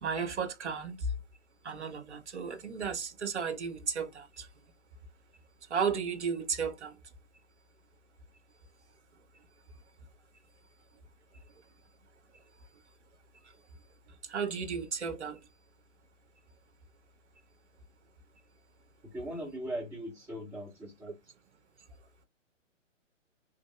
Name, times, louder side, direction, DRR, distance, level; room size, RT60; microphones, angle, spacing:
voice 1, 0.0-1.1 1.6-4.5 5.7-6.9 14.2-15.4, right 5 dB, 60° right, 0.8 m, -34 dB
voice 2, 19.0-21.2, equal, 10° right, 0.9 m, -39 dB
3.0 x 2.6 x 2.3 m
figure-of-eight pair, 125°, 38 cm